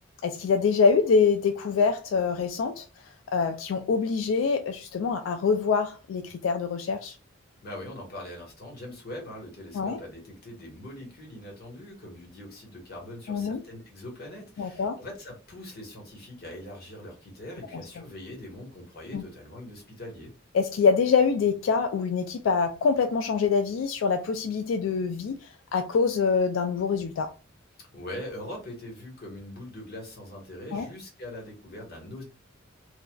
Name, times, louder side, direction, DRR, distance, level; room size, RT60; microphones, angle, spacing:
voice 1, 0.2-2.9 3.3-7.2 9.7-10.0 13.3-13.6 14.6-15.0 17.7-17.8 19.1-19.2 20.5-27.3 30.7-30.9, left 5 dB, 75° left, 0.3 m, -25 dB
voice 2, 7.6-20.3 27.8-32.2, left 1 dB, 50° left, 1.2 m, -42 dB
3.1 x 2.3 x 2.3 m
head